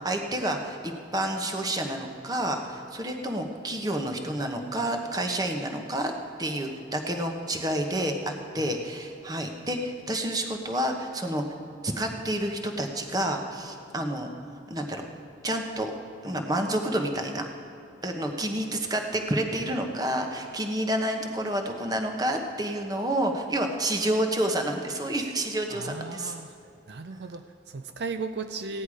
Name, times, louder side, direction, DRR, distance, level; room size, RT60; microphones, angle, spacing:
voice 1, 0.0-6.1 6.4-11.4 11.8-14.3 14.7-15.0 15.4-15.9 16.2-17.4 18.0-26.3, right 1 dB, 20° right, 4 dB, 1.0 m, -29 dB
voice 2, 25.7-26.6 26.9-28.8, right 4 dB, 65° right, 9 dB, 0.5 m, -36 dB
16.0 x 10.0 x 4.9 m, 2.8 s
head